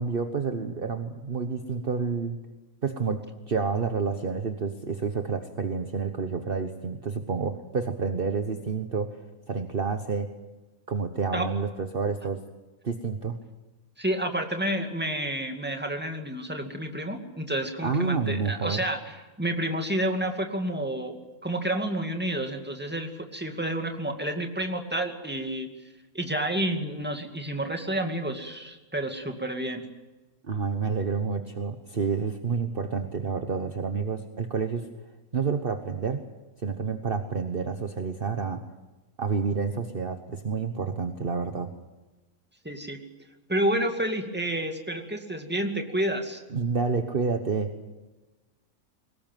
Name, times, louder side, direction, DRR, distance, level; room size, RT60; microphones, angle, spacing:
voice 1, 0.0-2.4 2.8-9.2 9.5-10.3 10.9-12.4 12.8-13.4 17.8-18.8 30.4-34.9 35.3-36.3 36.6-38.6 39.2-41.7 46.5-47.7, right 5 dB, 40° right, 7 dB, 1.3 m, -29 dB
voice 2, 14.0-21.2 21.4-25.7 26.1-29.8 42.6-43.0 43.5-46.4, right 1 dB, 5° right, 4 dB, 2.3 m, -30 dB
23.0 x 19.5 x 9.2 m, 1.1 s
omnidirectional pair, 1.5 m